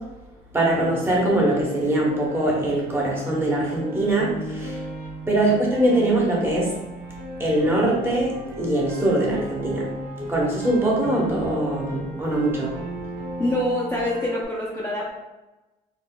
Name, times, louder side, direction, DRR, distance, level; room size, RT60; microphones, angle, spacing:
voice 1, 0.5-4.8 5.3-6.7 7.4-9.9 10.3-12.7, right 1 dB, 15° right, -3 dB, 1.0 m, -22 dB
Piano, 0.7-14.4, equal, 85° right, 1.4 m, -35 dB
voice 2, 13.4-15.1, left 1 dB, 15° left, -6 dB, 0.6 m, -25 dB
4.0 x 2.5 x 2.3 m, 1.0 s
cardioid pair, 110°, 17 cm